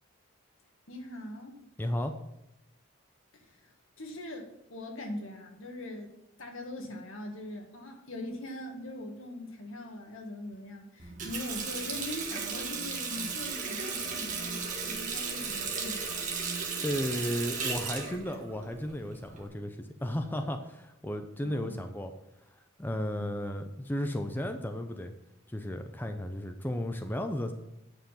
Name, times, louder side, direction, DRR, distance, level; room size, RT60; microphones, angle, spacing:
voice 1, 0.9-1.5 3.3-3.7 4.0-6.1 6.4-16.2 21.4-21.9 23.1-23.4, left 1 dB, 80° left, 3 dB, 1.8 m, -41 dB
voice 2, 1.8-2.1 16.8-22.1 22.6-25.1 25.5-27.5, equal, 10° left, 6 dB, 0.5 m, -34 dB
Water tap faucet, 11.0-19.5, right 5 dB, 40° right, 1.5 m, -35 dB
9.0 x 5.8 x 5.6 m, 0.84 s
head